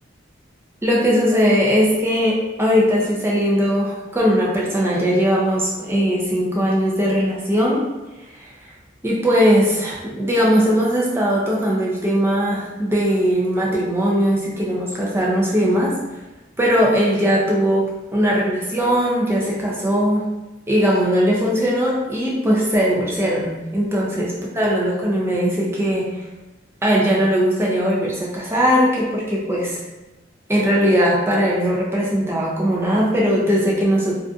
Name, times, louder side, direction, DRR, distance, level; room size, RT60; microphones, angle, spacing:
voice 1, 0.8-7.8 8.4-8.5 9.0-15.9 16.6-17.8 18.1-20.2 20.7-26.2 26.8-29.8 30.5-34.1, equal, 10° right, -4 dB, 0.4 m, -19 dB
2.5 x 2.4 x 2.3 m, 1.1 s
head